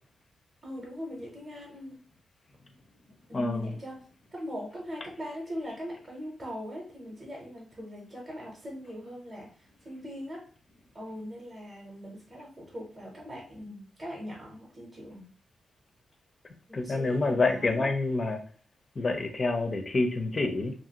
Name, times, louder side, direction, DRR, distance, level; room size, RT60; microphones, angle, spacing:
voice 1, 0.6-2.0 3.3-4.0 4.3-10.4 10.9-15.3 16.7-17.9, equal, 20° right, -2 dB, 0.7 m, -41 dB
voice 2, 3.3-3.7 16.7-18.4 19.0-20.7, left 3 dB, 30° left, 6 dB, 0.4 m, -27 dB
2.7 x 2.5 x 2.8 m, 0.43 s
wide cardioid pair, 160°, 0 cm